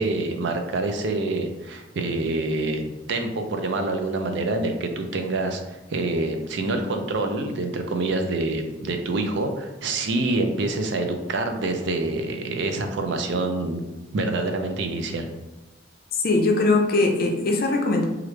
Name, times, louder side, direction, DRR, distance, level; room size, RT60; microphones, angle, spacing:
voice 1, 0.0-13.8 14.1-15.3, right 2 dB, 65° right, 5 dB, 0.4 m, -26 dB
voice 2, 16.1-18.1, left 2 dB, 55° left, 2 dB, 0.5 m, -21 dB
3.1 x 2.4 x 3.1 m, 1.1 s
head